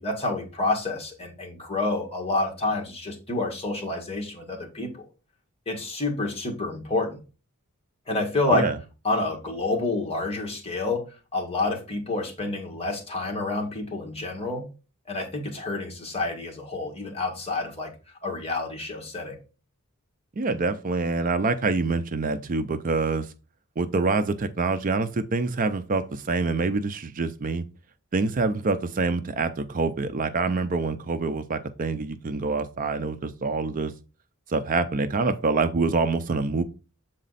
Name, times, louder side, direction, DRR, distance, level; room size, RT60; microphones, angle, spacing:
voice 1, 0.0-5.1 5.7-7.2 8.1-8.7 9.0-14.7 15.1-17.9 18.2-19.4, left 2 dB, 25° left, 1.8 m, -28 dB
voice 2, 20.4-23.3 23.8-27.6 28.1-33.9 34.5-36.6, right 3 dB, 40° right, 0.5 m, -26 dB
7.7 x 4.1 x 4.0 m
head